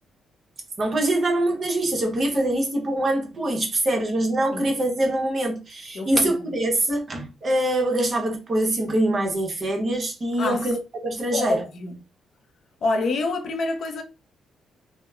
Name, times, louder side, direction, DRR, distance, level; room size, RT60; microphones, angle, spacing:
voice 1, 0.8-11.6, right 1 dB, 40° right, 0.9 m, -24 dB
voice 2, 5.9-6.5 10.4-10.6 11.3-12.0 12.8-14.0, left 3 dB, 60° left, 0.5 m, -27 dB
3.0 x 2.0 x 2.3 m
cardioid pair, 90°, 0 cm